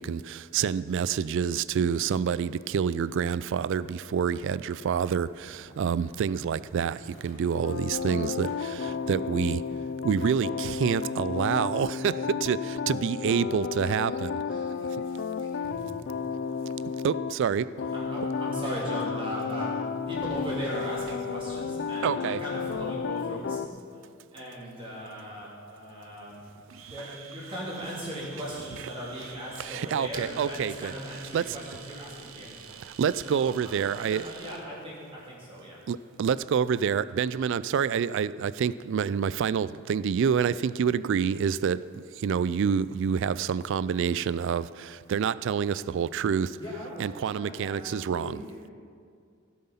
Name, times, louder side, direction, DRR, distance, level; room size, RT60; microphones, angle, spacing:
voice 1, 0.0-9.6 10.0-14.4 17.0-17.7 22.0-22.4 29.6-30.9 31.3-31.6 33.0-34.3 35.9-46.5 47.0-48.4, right 7 dB, 60° right, 17 dB, 0.3 m, -27 dB
sound 1, 5.0-11.1, left 1 dB, 70° left, 2.5 m, -55 dB
sound 2, 7.6-17.4 17.8-23.7, left 5 dB, 55° left, 0.4 m, -32 dB
voice 2, 14.5-15.7 17.9-23.6 23.9-24.0 24.3-26.3 26.8-32.5 33.2-35.8, equal, 25° right, -6 dB, 3.3 m, -38 dB
Domestic sounds home sounds, 26.7-34.6, right 6 dB, 75° right, 1.0 m, -48 dB
voice 3, 46.6-48.7, left 1 dB, 20° left, -6 dB, 3.1 m, -41 dB
16.5 x 7.6 x 5.6 m, 2.2 s
head